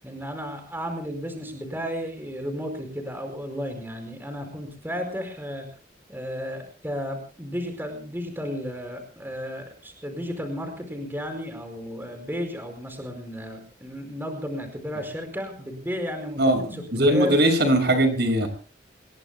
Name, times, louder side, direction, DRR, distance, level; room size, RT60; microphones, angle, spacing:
voice 1, 0.0-5.7 6.1-17.4 18.4-18.5, equal, 10° right, 5 dB, 4.9 m, -33 dB
voice 2, 16.4-18.5, right 1 dB, 60° right, 6 dB, 6.0 m, -20 dB
29.0 x 21.5 x 2.2 m, 0.39 s
head